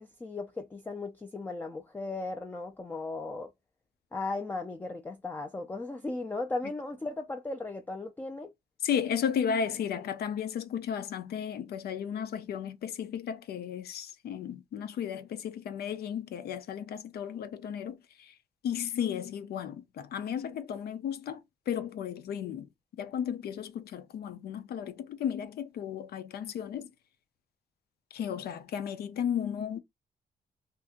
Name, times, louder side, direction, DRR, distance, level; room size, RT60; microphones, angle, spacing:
voice 1, 0.0-3.5 4.1-8.5, left 3 dB, 10° left, 0.3 m, -36 dB
voice 2, 8.8-18.3 18.6-22.7 23.0-26.9 28.1-29.8, left 8 dB, 85° left, 0.6 m, -34 dB
2.8 x 2.5 x 3.5 m
wide cardioid pair, 175°, 16 cm